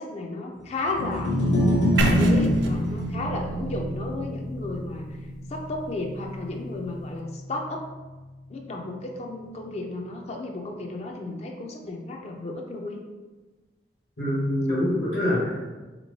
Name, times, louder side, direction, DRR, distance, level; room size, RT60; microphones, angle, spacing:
voice 1, 0.0-1.3 1.9-5.1 5.5-7.8 8.5-13.0, left 2 dB, 35° left, 1 dB, 0.4 m, -33 dB
sound 1, 0.9-7.2, left 1 dB, 90° left, 0.7 m, -26 dB
sound 2, 2.0-6.0, right 2 dB, 85° right, 0.4 m, -29 dB
voice 2, 14.2-15.7, left 1 dB, 75° left, -9 dB, 1.4 m, -25 dB
3.6 x 2.9 x 2.7 m, 1.2 s
head